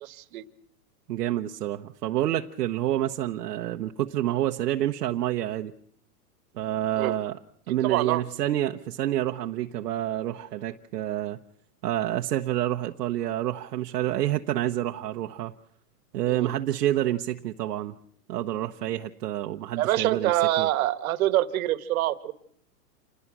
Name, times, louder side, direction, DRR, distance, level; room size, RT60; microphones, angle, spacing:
voice 1, 0.0-0.4 7.0-7.2 7.8-8.2 16.3-16.5 19.8-22.3, right 14 dB, 60° right, 13 dB, 1.6 m, -25 dB
voice 2, 1.1-5.7 6.6-7.4 7.7-11.4 11.8-15.5 16.1-18.0 18.3-20.3 20.6-20.7, right 13 dB, 75° right, 3 dB, 1.1 m, -28 dB
28.0 x 20.0 x 6.1 m, 0.64 s
hypercardioid pair, 150°, 49 cm